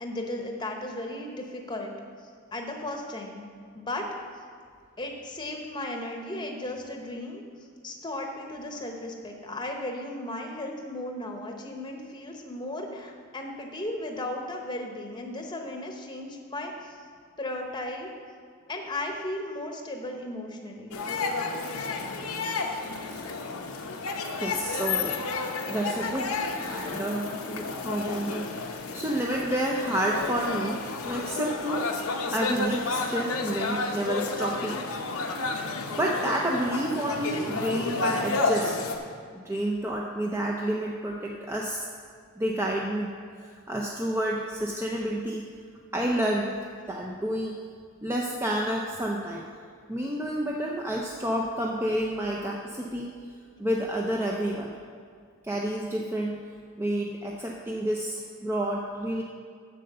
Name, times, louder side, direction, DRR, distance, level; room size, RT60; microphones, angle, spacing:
voice 1, 0.0-1.9 2.5-3.4 3.7-4.1 5.0-7.4 7.8-17.0 17.4-18.1 18.7-21.0, left 1 dB, 20° left, 2 dB, 0.9 m, -35 dB
sound 1, 20.9-39.0, left 3 dB, 85° left, 0.8 m, -31 dB
voice 2, 24.3-25.1 25.7-26.4 26.7-31.9 32.3-34.8 36.0-38.9 39.4-41.8 42.4-45.4 45.9-46.5 46.9-47.6 48.0-49.4 49.9-53.1 53.6-54.7 55.4-56.4 56.8-59.2, right 1 dB, 10° right, -2 dB, 0.5 m, -29 dB
7.5 x 6.6 x 6.7 m, 2.1 s
head